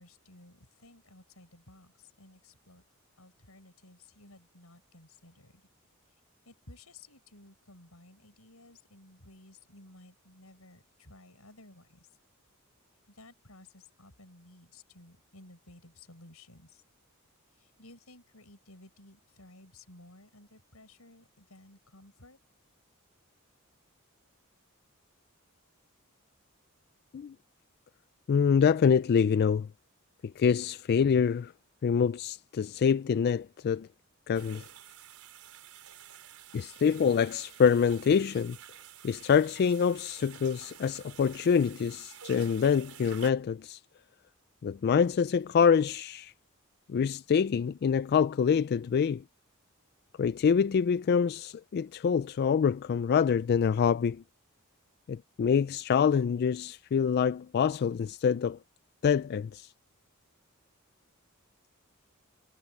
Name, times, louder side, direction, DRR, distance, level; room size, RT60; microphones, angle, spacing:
voice 1, 0.0-2.8 3.2-5.7 6.4-12.1 13.1-16.8 17.5-22.4, left 2 dB, 90° left, 6.3 m, -55 dB
voice 2, 28.3-29.7 30.4-31.5 31.8-33.9 34.3-34.6 36.5-38.6 39.0-43.8 44.6-46.3 46.9-49.2 50.2-54.2 55.1-58.6 59.0-59.7, left 6 dB, 50° left, 0.3 m, -26 dB
sound 1, 34.3-43.3, right 10 dB, 85° right, 5.1 m, -50 dB
head